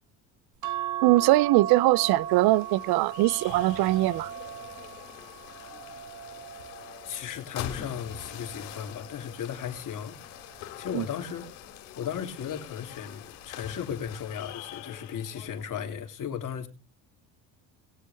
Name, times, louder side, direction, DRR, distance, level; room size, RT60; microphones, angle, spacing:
sound 1, 0.6-7.2 7.9-9.3 10.5-11.0 11.3-11.4, right 11 dB, 50° right, 1.5 m, -37 dB
voice 1, 1.0-4.3 10.9-11.0, right 18 dB, 70° right, 0.6 m, -22 dB
sound 2, 1.7-15.8, left 11 dB, 90° left, 2.8 m, -44 dB
voice 2, 7.0-10.2 10.8-11.4 12.0-16.7, left 8 dB, 50° left, 3.2 m, -35 dB
21.0 x 7.6 x 3.4 m
supercardioid pair, 95°, 39 cm